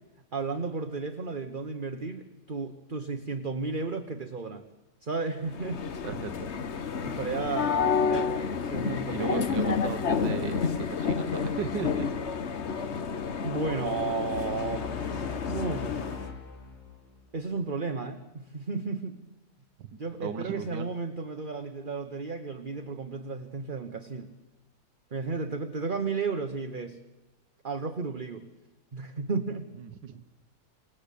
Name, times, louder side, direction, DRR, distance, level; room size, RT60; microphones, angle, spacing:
voice 1, 0.3-4.6 5.0-5.8 7.0-9.7 13.4-16.2 17.3-19.2 20.0-24.3 25.1-27.0 27.6-28.5 28.9-29.7, right 4 dB, 30° right, 7 dB, 1.3 m, -33 dB
sound 1, 5.5-16.3, left 6 dB, 45° left, 1.3 m, -30 dB
voice 2, 6.0-6.5 9.1-12.1 19.8-19.9 20.2-20.9 29.8-30.2, right 7 dB, 80° right, 9 dB, 1.8 m, -36 dB
sound 2, 14.3-17.6, left 6 dB, 60° left, 3.4 m, -41 dB
28.5 x 19.0 x 8.5 m, 1.2 s
omnidirectional pair, 1.9 m